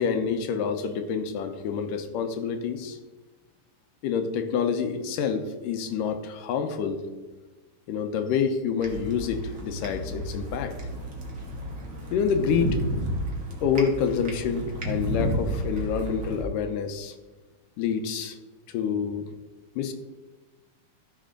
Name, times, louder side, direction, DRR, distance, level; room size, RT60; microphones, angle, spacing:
voice 1, 0.0-3.0 4.0-7.0 7.9-10.7 12.1-12.8 13.6-17.1 17.8-18.4 18.7-19.2 19.8-19.9, left 6 dB, 80° left, 7 dB, 2.4 m, -27 dB
sound 1, 8.8-16.4, equal, 45° right, 1.0 m, -32 dB
14.0 x 5.5 x 3.8 m, 1.2 s
omnidirectional pair, 3.8 m